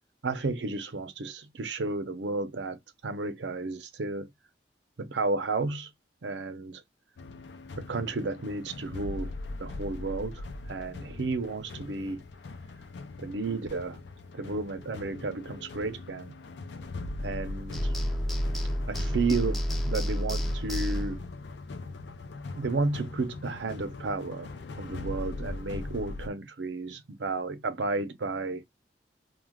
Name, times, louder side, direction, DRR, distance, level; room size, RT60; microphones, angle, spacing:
voice 1, 0.2-4.3 5.0-5.9 6.2-6.8 7.8-9.3 9.6-12.2 13.2-14.0 14.3-16.4 17.2-17.9 18.9-19.6 19.9-21.2 22.6-28.7, right 3 dB, 90° right, 0.6 m, -32 dB
sound 1, 7.2-26.3, left 2 dB, 80° left, 0.4 m, -40 dB
sound 2, 17.7-21.3, equal, ahead, 0.4 m, -30 dB
2.3 x 2.3 x 3.4 m
head